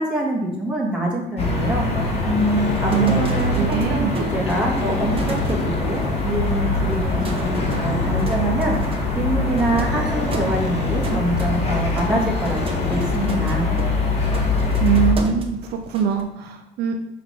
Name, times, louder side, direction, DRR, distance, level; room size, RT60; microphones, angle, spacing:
voice 1, 0.0-12.6 12.9-13.6, right 1 dB, 5° right, -4 dB, 2.4 m, -25 dB
sound 1, 1.4-15.1, left 3 dB, 35° left, 1.8 m, -23 dB
sound 2, 2.4-16.2, right 2 dB, 35° right, 1.0 m, -35 dB
voice 2, 3.5-4.1 14.8-17.0, right 8 dB, 75° right, 5 dB, 0.7 m, -22 dB
5.6 x 3.7 x 6.0 m, 0.87 s
cardioid pair, 110°, 17 cm